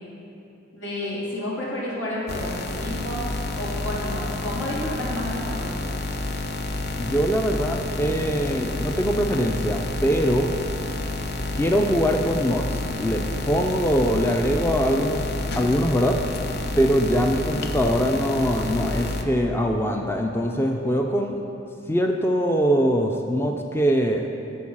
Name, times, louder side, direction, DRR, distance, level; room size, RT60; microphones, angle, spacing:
voice 1, 0.7-5.7, left 1 dB, 80° left, -6 dB, 2.5 m, -31 dB
sound 1, 2.3-19.2, left 2 dB, 55° left, 0.6 m, -29 dB
voice 2, 7.0-10.5 11.6-15.2 15.6-16.2 16.8-21.4 21.9-24.3, equal, 10° left, 3 dB, 0.4 m, -22 dB
11.0 x 4.6 x 7.2 m, 2.8 s
head